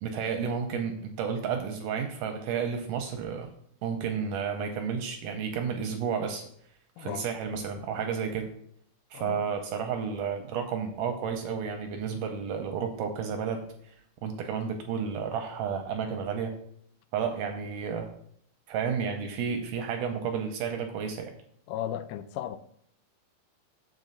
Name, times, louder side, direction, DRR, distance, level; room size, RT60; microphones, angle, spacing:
voice 1, 0.0-3.5 3.8-6.4 7.0-8.5 9.1-14.0 14.2-16.6 17.1-18.1 18.7-21.3, right 6 dB, 80° right, 2.0 m, -31 dB
voice 2, 7.0-7.3 9.1-9.4 21.7-22.6, left 11 dB, 90° left, 2.5 m, -35 dB
7.4 x 3.9 x 6.7 m
omnidirectional pair, 4.2 m